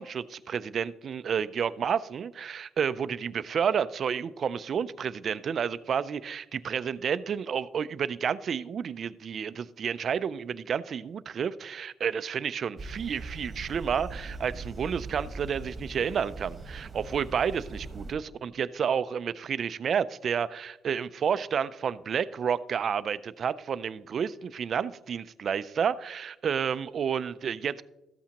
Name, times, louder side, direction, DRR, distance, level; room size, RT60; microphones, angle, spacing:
voice 1, 0.0-27.8, right 7 dB, 55° right, 16 dB, 0.4 m, -30 dB
sound 1, 12.8-18.1, right 3 dB, 30° right, 1.3 m, -40 dB
13.5 x 8.5 x 2.9 m, 0.98 s
cardioid pair, 90°, 0 cm